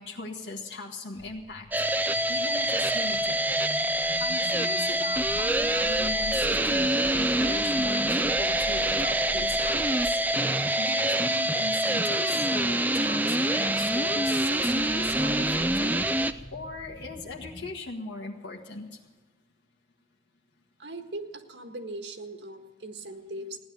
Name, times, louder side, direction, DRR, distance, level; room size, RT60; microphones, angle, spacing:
voice 1, 0.0-1.9 2.3-3.4 3.9-19.0, left 3 dB, 90° left, -2 dB, 1.7 m, -39 dB
sound 1, 1.2-17.8, equal, 40° left, 1.1 m, -45 dB
Sunshine sugar (stereo guitar feedback), 1.7-16.3, right 1 dB, 10° right, 0.4 m, -25 dB
voice 2, 20.8-23.6, right 2 dB, 85° right, 5 dB, 1.7 m, -39 dB
16.0 x 10.5 x 6.7 m, 1.2 s
head